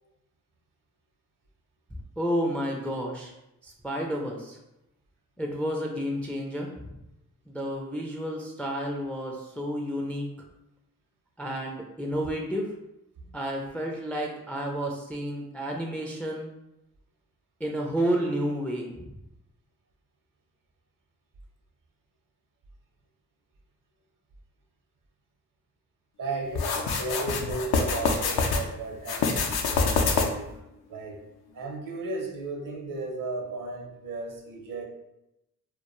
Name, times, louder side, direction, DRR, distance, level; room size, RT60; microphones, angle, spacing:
voice 1, 2.2-3.3 3.6-4.6 5.4-6.9 7.5-10.3 11.4-12.7 13.3-16.5 17.6-19.1, equal, 5° left, 0 dB, 0.4 m, -31 dB
voice 2, 26.2-30.5 30.9-31.2 31.5-34.8, right 3 dB, 55° right, 1 dB, 0.7 m, -35 dB
sound 1, 26.6-28.6 29.0-30.5, left 4 dB, 70° left, 0.5 m, -25 dB
2.2 x 2.2 x 2.9 m, 0.88 s
supercardioid pair, 50°, 39 cm